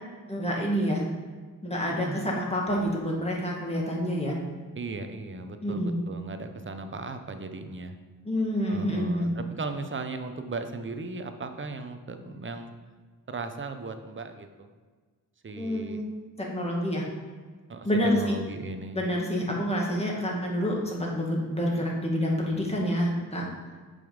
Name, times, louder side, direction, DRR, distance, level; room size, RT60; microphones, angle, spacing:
voice 1, 0.3-1.0 1.6-4.3 5.6-6.0 8.3-9.3 15.6-16.0 16.5-17.0 17.8-18.4 18.9-23.4, equal, 20° left, -3 dB, 2.1 m, -28 dB
voice 2, 1.9-2.4 4.7-7.9 8.7-12.7 13.3-14.7 15.4-16.0 17.7-19.0, right 3 dB, 35° right, 8 dB, 0.8 m, -37 dB
6.9 x 5.4 x 5.1 m, 1.5 s
cardioid pair, 70°, 34 cm